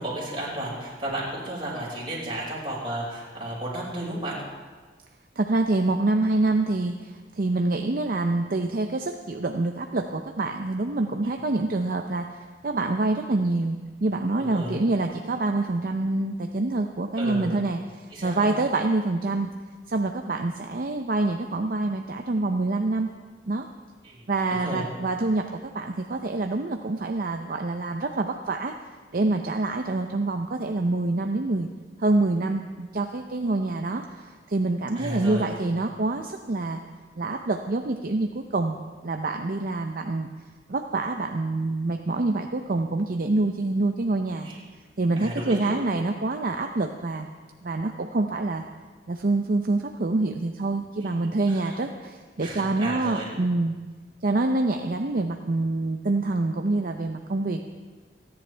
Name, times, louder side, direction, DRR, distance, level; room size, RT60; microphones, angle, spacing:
voice 1, 0.0-4.3 14.4-14.8 17.2-17.5 18.1-18.5 24.0-24.2 24.5-24.9 34.9-35.5 44.4-44.6 45.2-45.8 51.5-51.7 52.4-53.4, right 1 dB, 30° right, -5 dB, 5.3 m, -33 dB
voice 2, 5.4-19.5 19.9-23.1 23.5-23.7 24.3-28.8 29.1-31.7 32.0-36.8 37.2-38.8 39.0-40.3 40.7-44.5 45.0-47.3 47.6-48.6 49.1-53.7 54.2-57.7, right 2 dB, 55° right, 5 dB, 0.6 m, -26 dB
28.5 x 10.5 x 3.4 m, 1.4 s
head